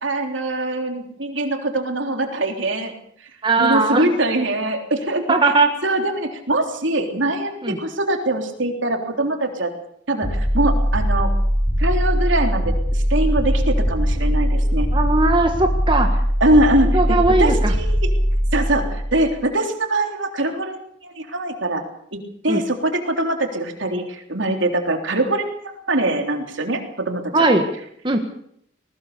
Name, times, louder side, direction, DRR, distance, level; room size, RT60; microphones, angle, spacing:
voice 1, 0.0-2.9 3.6-5.2 5.8-9.7 10.1-11.3 11.8-14.9 16.4-18.1 18.5-21.8 22.1-27.2, right 1 dB, 70° right, 4 dB, 3.5 m, -23 dB
voice 2, 3.4-4.1 5.3-5.7 7.6-7.8 14.9-16.1 16.9-17.7 22.5-22.6 27.3-27.6 28.0-28.2, right 3 dB, 25° right, 4 dB, 1.6 m, -18 dB
Distant Hip Hop Music, 10.2-19.3, equal, 5° left, 2.3 m, -20 dB
20.0 x 19.5 x 6.9 m, 0.68 s
head